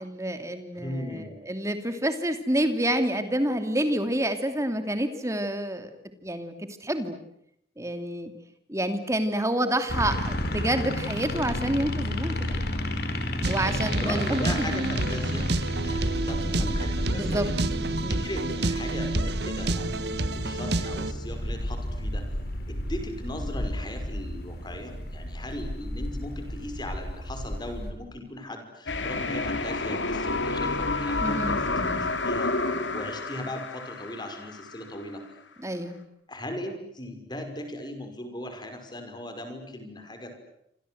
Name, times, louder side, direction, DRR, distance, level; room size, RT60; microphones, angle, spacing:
voice 1, 0.0-5.9 6.2-7.2 7.8-8.3 8.7-12.6 13.5-14.7 16.4-16.8 17.2-17.5 18.0-18.3 31.2-32.1 35.6-36.0, right 1 dB, 15° right, 8 dB, 2.7 m, -28 dB
voice 2, 0.8-1.5 13.7-15.5 15.8-17.6 17.9-22.3 22.7-35.2 36.3-40.3, left 1 dB, 25° left, 6 dB, 5.7 m, -38 dB
sound 1, 9.9-27.9, left 1 dB, 55° left, 4.7 m, -32 dB
sound 2, 13.4-21.1, right 2 dB, 60° right, 1.4 m, -29 dB
sound 3, 28.9-34.8, left 3 dB, 85° left, 2.9 m, -29 dB
28.0 x 26.5 x 8.0 m, 0.75 s
head